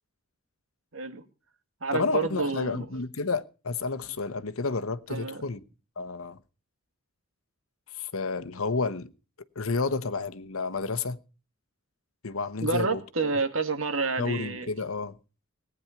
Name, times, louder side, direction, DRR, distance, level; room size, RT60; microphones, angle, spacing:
voice 1, 0.9-1.2 1.8-2.9 5.1-5.4 12.6-14.7, right 4 dB, 70° right, 2.1 m, -29 dB
voice 2, 1.9-5.6 6.0-6.4 7.9-9.1 9.5-11.2 12.2-13.0 14.2-15.2, left 4 dB, 80° left, 1.0 m, -30 dB
18.5 x 9.7 x 5.8 m
head